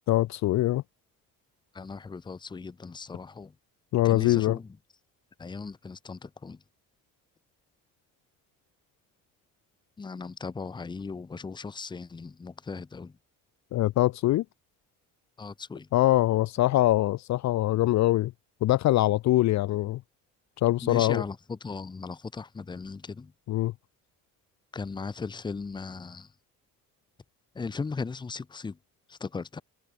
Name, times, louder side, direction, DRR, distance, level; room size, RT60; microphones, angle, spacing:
voice 1, 0.1-0.8 3.9-4.6 13.7-14.4 15.9-18.3 18.6-20.0 20.6-21.2 23.5-23.7, left 15 dB, 50° left, 0.7 m, -23 dB
voice 2, 1.7-3.5 4.0-4.7 5.4-6.6 10.0-13.1 15.4-15.9 20.8-23.3 24.7-26.3 27.5-28.8 29.1-29.6, left 4 dB, 10° left, 0.9 m, -37 dB
cardioid pair, 165°, 36 cm